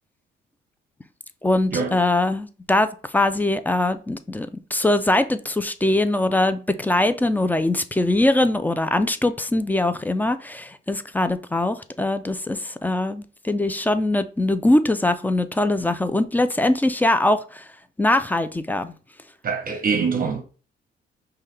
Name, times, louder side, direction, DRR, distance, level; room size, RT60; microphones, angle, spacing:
voice 1, 1.4-17.6 18.0-18.9, left 1 dB, 10° left, 0.4 m, -22 dB
voice 2, 19.4-20.4, right 5 dB, 45° right, 0.7 m, -24 dB
5.3 x 2.2 x 3.2 m
cardioid pair, 90°, 20 cm